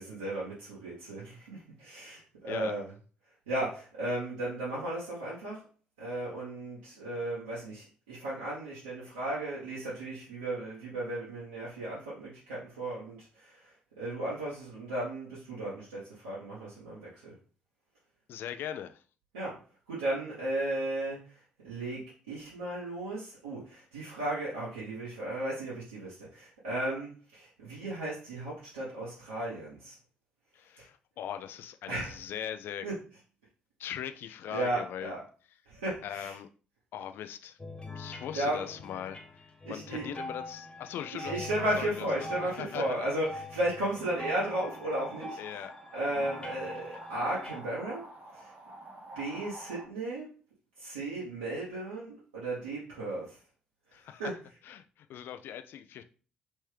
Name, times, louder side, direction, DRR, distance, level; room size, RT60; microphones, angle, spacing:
voice 1, 0.0-2.9 3.5-5.6 6.0-17.3 19.3-19.5 19.9-21.4 21.6-30.0 30.8-30.9 31.9-32.2 32.8-32.9 34.5-35.2 35.7-36.3 38.3-38.7 39.6-40.0 41.1-45.4 45.9-48.0 48.3-48.5 49.1-50.4 50.8-53.4 54.2-54.3, right 1 dB, 75° right, -8 dB, 0.9 m, -35 dB
voice 2, 18.3-19.0 30.5-32.9 33.8-35.2 36.0-36.5 36.9-37.6 37.9-41.4 41.8-43.1 45.4-45.7 53.9-54.2 54.6-56.0, left 10 dB, 55° left, 9 dB, 0.3 m, -40 dB
sound 1, 37.6-47.6, left 2 dB, 20° left, 0.7 m, -44 dB
sound 2, 43.9-49.9, right 1 dB, 40° right, 0.9 m, -48 dB
3.2 x 3.1 x 3.2 m, 0.38 s
figure-of-eight pair, 45°, 4 cm